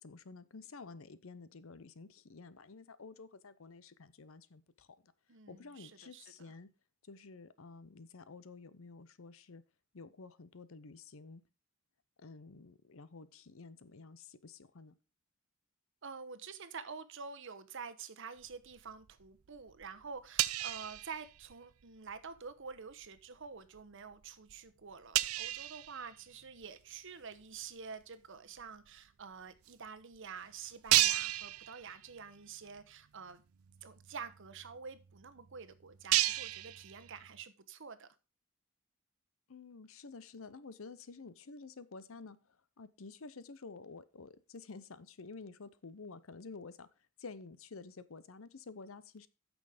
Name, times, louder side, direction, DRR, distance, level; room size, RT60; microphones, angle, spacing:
voice 1, 0.0-5.1 5.5-6.7 7.0-9.6 9.9-11.4 12.2-14.9 39.5-46.9 47.2-49.3, left 4 dB, 70° left, 0.7 m, -51 dB
voice 2, 5.3-6.5 16.0-33.4 33.8-38.1, right 5 dB, 60° right, 1.0 m, -48 dB
sound 1, 18.5-19.2 19.5-21.8 22.1-22.4 22.9-23.2 23.7-23.8 24.2-24.3 24.5-24.6 25.1-26.8 27.4-27.5 28.6-28.7 28.9-29.0 29.7-29.8 30.2-30.3 30.8-32.3 32.7-32.8 33.3-33.4 33.6-37.4, right 15 dB, 85° right, 0.5 m, -34 dB
9.0 x 6.3 x 5.0 m
head